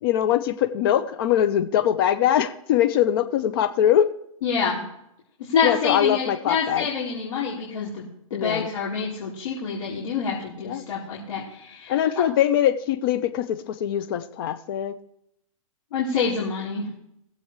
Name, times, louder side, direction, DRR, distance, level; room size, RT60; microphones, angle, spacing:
voice 1, 0.0-4.1 5.6-6.9 8.3-8.7 10.6-10.8 11.9-14.9, left 10 dB, 40° left, 9 dB, 0.7 m, -22 dB
voice 2, 4.4-4.8 5.5-8.0 8.3-11.9 15.9-16.9, left 5 dB, 65° left, -6 dB, 3.8 m, -27 dB
20.5 x 7.8 x 3.2 m, 0.75 s
hypercardioid pair, 155°, 18 cm